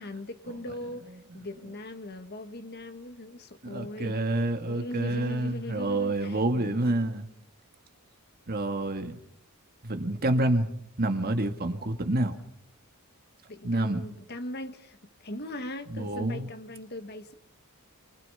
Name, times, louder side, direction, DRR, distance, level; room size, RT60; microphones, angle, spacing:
voice 1, 0.0-4.2 4.7-6.9 13.5-17.3, left 1 dB, 45° left, 1.8 m, -40 dB
voice 2, 3.6-7.2 8.5-9.2 9.8-10.7 11.0-12.4 13.6-14.1 15.9-16.5, right 1 dB, 45° right, 1.9 m, -28 dB
28.5 x 24.0 x 5.6 m
head